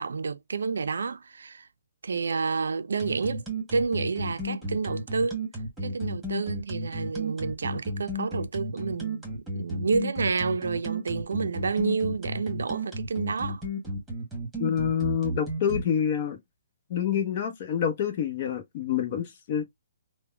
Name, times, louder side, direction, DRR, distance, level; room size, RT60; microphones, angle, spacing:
voice 1, 0.0-1.7 2.0-3.4 3.7-5.4 5.8-13.6, right 4 dB, 75° right, 0.4 m, -29 dB
sound 1, 3.0-15.8, equal, 5° right, 1.5 m, -33 dB
voice 2, 14.6-16.4 16.9-19.6, left 8 dB, 45° left, 0.8 m, -27 dB
3.5 x 2.1 x 2.2 m
hypercardioid pair, 135°, 0 cm